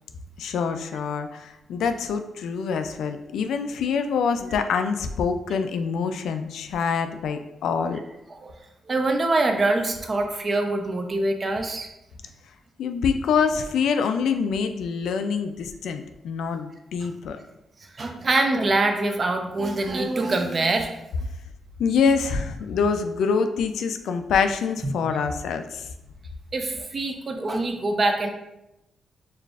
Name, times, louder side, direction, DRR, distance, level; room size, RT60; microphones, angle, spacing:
voice 1, 0.4-8.0 12.8-17.4 21.8-25.9, left 6 dB, 80° left, 7 dB, 0.3 m, -25 dB
voice 2, 8.9-11.9 17.0-17.1 17.9-20.9 26.5-28.3, right 2 dB, 30° right, 4 dB, 0.4 m, -24 dB
6.5 x 2.5 x 2.4 m, 0.91 s
wide cardioid pair, 165°, 0 cm